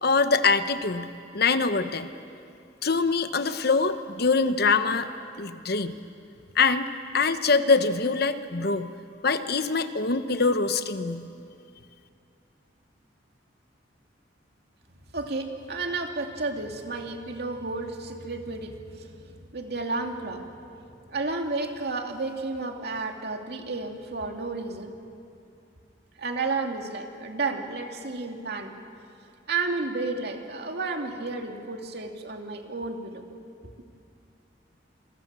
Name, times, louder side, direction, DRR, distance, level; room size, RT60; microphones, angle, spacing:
voice 1, 0.0-2.1 2.8-5.1 5.4-6.0 6.5-8.9 9.2-11.3, left 4 dB, 60° left, 10 dB, 1.1 m, -24 dB
voice 2, 15.1-19.1 19.5-20.4 21.1-24.9 26.2-28.7 29.5-33.3, right 3 dB, 60° right, 3 dB, 2.5 m, -32 dB
28.5 x 23.5 x 7.5 m, 2.5 s
head